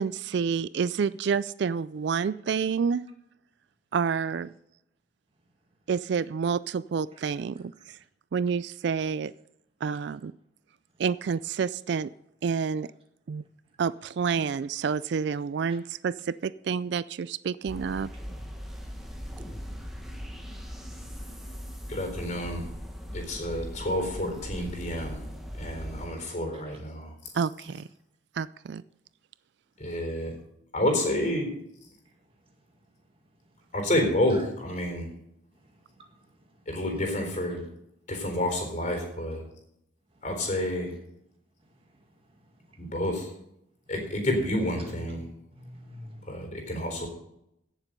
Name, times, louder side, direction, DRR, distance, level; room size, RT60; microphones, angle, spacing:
voice 1, 0.0-3.1 3.9-4.5 5.9-8.0 8.3-9.3 9.8-10.3 11.0-12.1 12.4-12.9 13.3-13.4 13.8-18.1 27.3-27.9 28.4-28.8, right 6 dB, 60° right, 17 dB, 0.3 m, -29 dB
sound 1, 17.7-26.1, equal, ahead, 1.5 m, -39 dB
voice 2, 21.9-22.6 23.1-25.3 25.6-27.3 29.8-30.3 30.7-31.6 33.7-35.1 36.7-37.6 38.1-39.4 40.2-40.9 42.8-43.3 43.9-45.3 46.2-47.1, left 1 dB, 40° left, 4 dB, 4.1 m, -29 dB
voice 3, 35.6-36.3 42.7-42.8 44.9-45.0 45.5-46.4, equal, 30° right, 2 dB, 2.0 m, -47 dB
16.5 x 7.3 x 5.3 m, 0.80 s
head